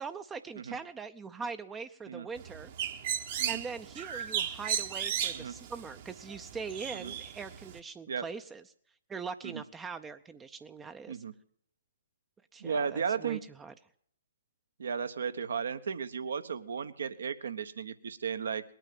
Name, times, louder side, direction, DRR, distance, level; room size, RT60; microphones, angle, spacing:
voice 1, 0.0-2.7 3.5-8.6 9.1-11.2 12.5-13.7, right 5 dB, 15° right, 10 dB, 0.5 m, -42 dB
Bird, 2.4-7.8, right 9 dB, 50° right, 1.2 m, -36 dB
voice 2, 12.6-13.4 14.8-18.6, right 6 dB, 70° right, 12 dB, 1.0 m, -35 dB
20.0 x 9.1 x 7.6 m, 0.67 s
figure-of-eight pair, 125°, 0 cm